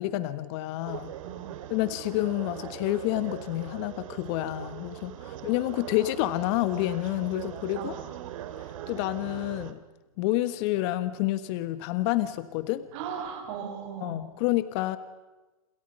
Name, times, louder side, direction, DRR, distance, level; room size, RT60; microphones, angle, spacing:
voice 1, 0.0-1.1 1.7-7.9 8.9-9.8 10.2-12.8 14.0-15.0, left 15 dB, 50° left, 13 dB, 1.4 m, -29 dB
sound 1, 0.9-9.7, right 11 dB, 65° right, 2.5 m, -41 dB
voice 2, 1.2-1.6 5.3-5.4 7.8-8.1 12.9-14.3, right 7 dB, 50° right, 4 dB, 6.5 m, -38 dB
28.5 x 27.5 x 5.6 m, 1.1 s
hypercardioid pair, 135°, 18 cm